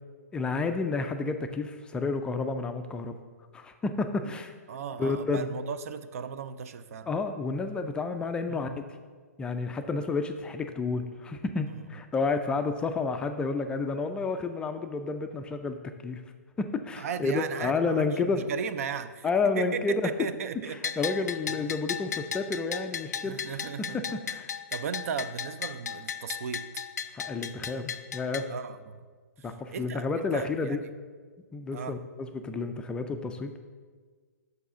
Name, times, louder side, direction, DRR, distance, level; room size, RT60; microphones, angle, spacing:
voice 1, 0.3-3.2 3.5-4.5 5.0-5.5 7.1-8.7 9.4-15.8 16.0-16.2 16.6-18.4 19.2-20.1 20.7-23.4 24.1-24.5 27.1-28.5 29.4-30.8 31.5-33.6, left 4 dB, 10° left, 6 dB, 0.3 m, -30 dB
voice 2, 4.7-7.1 8.5-8.8 11.7-11.8 17.0-19.3 19.5-21.0 21.5-21.6 23.2-24.2 24.7-26.8 28.5-29.1 29.4-30.9 31.7-32.0, right 7 dB, 55° right, 12 dB, 0.4 m, -36 dB
Bell, 20.8-28.5, left 7 dB, 75° left, 0.4 m, -36 dB
6.5 x 4.6 x 5.6 m, 1.5 s
hypercardioid pair, 130°, 9 cm